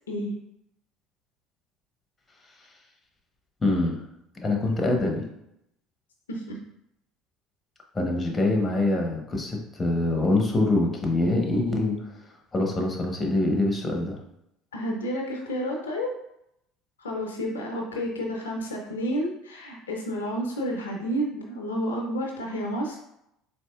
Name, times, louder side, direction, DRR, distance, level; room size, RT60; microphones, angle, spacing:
voice 1, 3.6-4.0 4.4-5.3 7.9-12.0 12.5-14.2, left 2 dB, 25° left, 1 dB, 0.9 m, -24 dB
voice 2, 14.7-16.1 17.0-23.0, equal, 90° left, 0 dB, 0.5 m, -30 dB
4.1 x 2.7 x 2.3 m, 0.79 s
hypercardioid pair, 65°, 0 cm